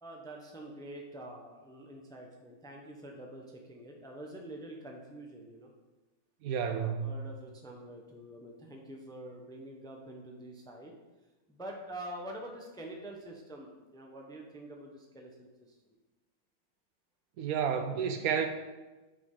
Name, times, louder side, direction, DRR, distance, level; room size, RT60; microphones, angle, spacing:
voice 1, 0.0-5.7 6.6-10.9 11.5-16.0, right 1 dB, 5° left, 1 dB, 0.6 m, -46 dB
voice 2, 6.4-7.1 17.4-18.5, right 7 dB, 75° right, 7 dB, 1.1 m, -31 dB
9.5 x 5.0 x 3.8 m, 1.2 s
omnidirectional pair, 1.6 m